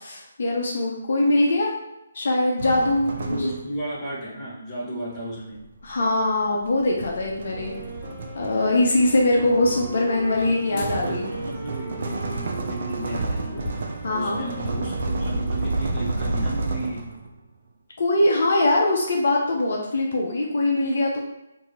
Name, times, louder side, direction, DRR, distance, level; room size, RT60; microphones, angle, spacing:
voice 1, 0.0-1.7 2.1-3.5 5.8-7.8 8.3-11.3 14.0-14.4 18.0-21.2, left 2 dB, 60° left, -1 dB, 0.7 m, -22 dB
sound 1, 2.6-3.9 5.1-17.3, right 3 dB, 55° right, 0.5 m, -31 dB
voice 2, 3.1-5.7 10.5-13.7 14.1-17.2, right 1 dB, 15° left, -9 dB, 1.1 m, -34 dB
Wind instrument woodwind instrument, 7.5-15.8, right 1 dB, 5° right, 0.7 m, -41 dB
sound 2, 10.6-11.0 12.7-16.2 16.9-17.0, left 2 dB, 35° left, 0.9 m, -41 dB
2.8 x 2.7 x 3.7 m, 0.89 s
figure-of-eight pair, 145°, 0 cm